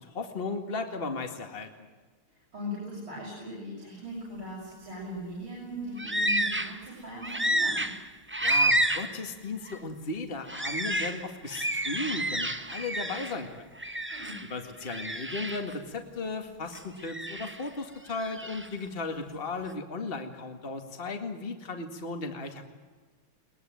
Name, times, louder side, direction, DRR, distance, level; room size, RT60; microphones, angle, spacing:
voice 1, 0.0-1.7 8.4-13.6 14.4-22.7, left 3 dB, 25° left, 5 dB, 2.2 m, -36 dB
voice 2, 2.3-7.9 14.1-14.4, left 1 dB, 65° right, -5 dB, 8.0 m, -39 dB
sound 1, 6.0-6.8 7.2-9.2 9.6-9.8 10.5-13.4 13.8-14.5 14.8-15.7 16.7-17.7 18.1-18.7, right 1 dB, 15° right, 0.4 m, -30 dB
22.0 x 21.0 x 9.4 m, 1.3 s
omnidirectional pair, 2.3 m